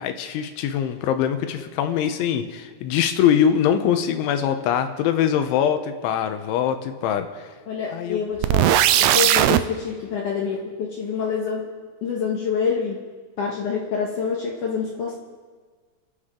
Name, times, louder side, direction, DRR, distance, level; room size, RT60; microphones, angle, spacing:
voice 1, 0.0-7.3 7.9-8.2, left 9 dB, 80° left, 8 dB, 3.3 m, -22 dB
voice 2, 7.7-11.7 12.0-13.0 13.4-15.2, left 6 dB, 65° left, -2 dB, 2.2 m, -27 dB
sound 1, 8.4-9.6, right 12 dB, 90° right, 2.3 m, -17 dB
28.5 x 11.5 x 3.8 m, 1.5 s
omnidirectional pair, 5.5 m